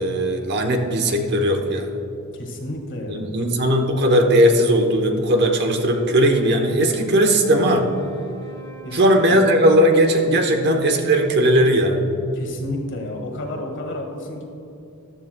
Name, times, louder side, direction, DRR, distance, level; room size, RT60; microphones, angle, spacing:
voice 1, 0.0-1.9 3.1-7.9 8.9-12.0, equal, 50° right, 4 dB, 1.0 m, -18 dB
voice 2, 2.4-3.3 8.8-9.4 12.3-14.4, left 1 dB, 55° left, 2 dB, 1.7 m, -31 dB
Wind instrument woodwind instrument, 5.4-10.2, right 3 dB, 15° left, 2.1 m, -44 dB
14.0 x 12.5 x 2.2 m, 2.8 s
head